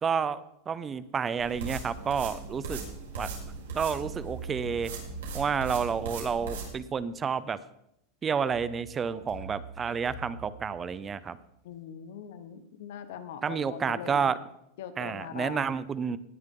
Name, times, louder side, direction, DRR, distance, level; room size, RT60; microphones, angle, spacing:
voice 1, 0.0-2.8 3.2-3.3 3.7-4.9 5.3-7.6 8.2-11.4 13.4-14.4 15.0-16.2, right 6 dB, 20° right, 15 dB, 0.7 m, -30 dB
sound 1, 1.4-6.7, right 4 dB, 90° right, 5.1 m, -39 dB
sound 2, 1.7-6.7 8.5-11.5, right 4 dB, 50° left, 4.9 m, -45 dB
voice 2, 11.6-14.3 14.8-15.7, left 8 dB, 75° left, 10 dB, 1.3 m, -41 dB
18.5 x 9.6 x 3.9 m, 0.79 s
supercardioid pair, 130°, 0 cm